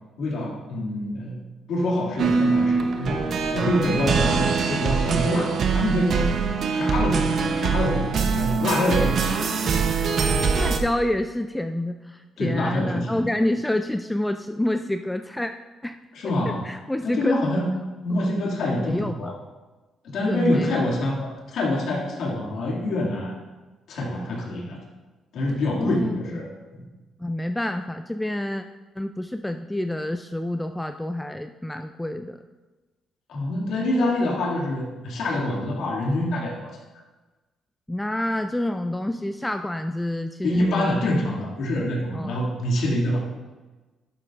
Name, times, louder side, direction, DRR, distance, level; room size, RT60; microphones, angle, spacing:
voice 1, 0.2-1.4 1.7-3.2 3.5-6.3 6.7-9.3 12.4-13.2 16.1-16.6 17.0-17.6 18.0-19.3 20.0-23.3 23.9-24.8 25.3-26.5 26.7-26.8 33.3-36.7 40.4-43.2, left 1 dB, 75° left, -3 dB, 2.3 m, -26 dB
sound 1, 2.2-10.8, right 5 dB, 60° right, 0.8 m, -23 dB
voice 2, 10.5-15.5 15.8-16.0 16.2-17.7 18.1-18.2 18.7-19.3 20.3-20.8 25.7-26.4 27.2-28.6 29.0-32.4 37.9-40.9 42.1-42.3, left 1 dB, 10° left, 7 dB, 0.3 m, -28 dB
11.5 x 7.5 x 2.5 m, 1.2 s
cardioid pair, 90°, 0 cm